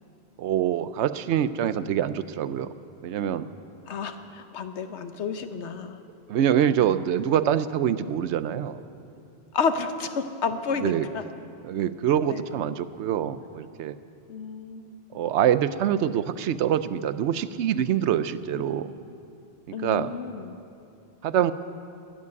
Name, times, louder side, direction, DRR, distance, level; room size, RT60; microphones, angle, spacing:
voice 1, 0.4-2.7 3.0-3.5 6.3-8.8 10.8-11.1 11.7-13.9 15.1-18.9 19.8-20.1 21.2-21.5, right 10 dB, 90° right, 14 dB, 0.9 m, -25 dB
voice 2, 3.9-6.0 9.5-11.2 12.2-12.4 14.3-15.0 18.5-18.8 19.7-20.6, left 5 dB, 80° left, 9 dB, 1.2 m, -31 dB
12.5 x 11.0 x 9.6 m, 2.6 s
omnidirectional pair, 1.1 m